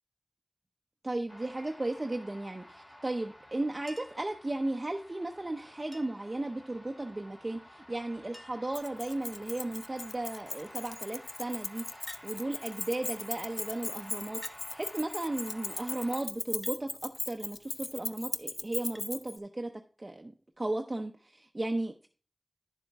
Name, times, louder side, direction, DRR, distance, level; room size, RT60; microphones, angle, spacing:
voice 1, 1.0-16.9 17.3-19.7 20.0-22.1, right 2 dB, 40° right, 3 dB, 0.7 m, -35 dB
sound 1, 1.3-16.2, equal, 45° left, 2.5 m, -52 dB
Chink clink, 3.9-4.3 5.9-6.3 7.7-7.8 8.0-8.1 8.3-8.8 9.6-9.9 12.1-12.3 13.4-13.5 14.4-14.7 16.6-16.8 19.0-19.1 20.5-20.6, equal, 10° left, 0.6 m, -50 dB
Keys jangling, 8.7-19.4, left 3 dB, 70° left, 0.4 m, -38 dB
9.9 x 7.1 x 3.5 m, 0.39 s
wide cardioid pair, 60°, 0 cm